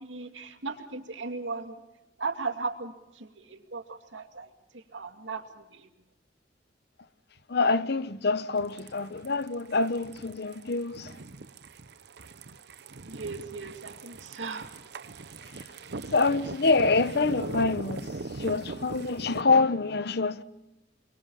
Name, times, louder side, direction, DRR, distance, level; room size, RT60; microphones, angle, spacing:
voice 1, 0.0-1.8 2.2-4.5 4.7-5.9 13.0-14.8, right 4 dB, 90° right, 2.4 m, -37 dB
voice 2, 7.5-11.1 16.1-18.1 18.4-20.4, left 3 dB, 60° left, 1.0 m, -26 dB
Bike On Concrete OS, 8.6-19.4, right 3 dB, 60° right, 0.9 m, -41 dB
28.5 x 24.5 x 5.6 m
head